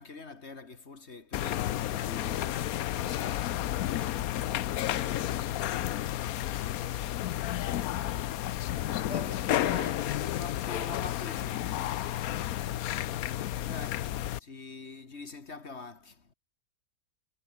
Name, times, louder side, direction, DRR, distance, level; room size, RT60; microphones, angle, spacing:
voice 1, 0.0-6.3 8.4-12.8 13.6-16.3, left 4 dB, 50° left, 2.2 m, -46 dB
sound 1, 1.3-14.4, left 13 dB, 85° left, 1.2 m, -31 dB
voice 2, 6.7-8.6 10.2-10.3 12.7-13.4, right 2 dB, 80° right, 5.7 m, -62 dB
omnidirectional pair, 1.5 m